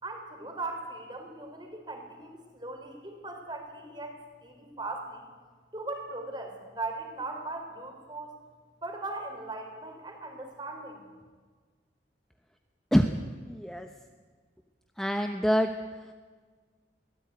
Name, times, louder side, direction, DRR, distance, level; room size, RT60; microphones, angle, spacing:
voice 1, 0.0-5.2 5.7-8.3 8.8-11.0, right 2 dB, 25° right, 4 dB, 4.0 m, -39 dB
voice 2, 13.5-13.9 15.0-15.7, equal, ahead, 5 dB, 0.9 m, -25 dB
23.0 x 17.5 x 9.5 m, 1.5 s
head